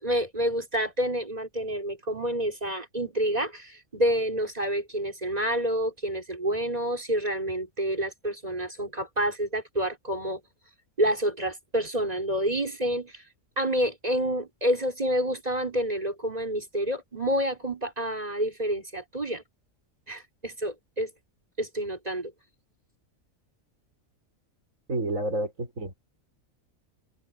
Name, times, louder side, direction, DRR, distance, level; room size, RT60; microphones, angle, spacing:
voice 1, 0.0-10.4 11.0-13.1 13.6-19.4 20.1-21.1 21.6-22.3, equal, 30° right, 4.4 m, -28 dB
voice 2, 24.9-25.9, right 2 dB, 75° right, 5.9 m, -29 dB
open air
omnidirectional pair, 1.4 m